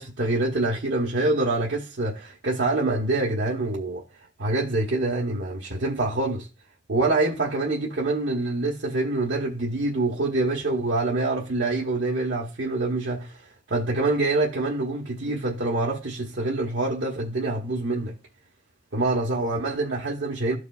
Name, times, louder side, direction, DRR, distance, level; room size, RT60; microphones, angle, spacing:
voice 1, 0.0-4.0 4.4-6.5 6.9-18.2 18.9-20.6, right 2 dB, 80° right, 1.0 m, -26 dB
14.0 x 4.8 x 2.3 m
head